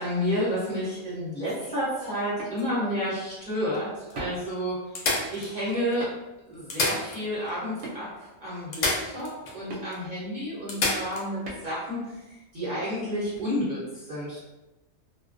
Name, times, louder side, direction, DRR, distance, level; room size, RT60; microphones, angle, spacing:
voice 1, 0.0-5.0 5.3-6.1 6.5-12.2 12.5-14.4, equal, 45° right, -10 dB, 0.9 m, -30 dB
sound 1, 1.4-3.1 3.7-3.8 4.1-4.2 4.9-5.9 6.5-7.5 7.8-7.9 8.7-9.6 9.9-10.0 10.7-11.3 13.2-13.4, left 2 dB, 85° left, 0.3 m, -30 dB
sound 2, 2.4-2.5 4.1-4.5 6.0-6.3 7.8-8.2 9.7-9.8 11.4-11.7, right 2 dB, 80° right, 1.0 m, -38 dB
2.3 x 2.2 x 2.4 m, 1.0 s
omnidirectional pair, 1.3 m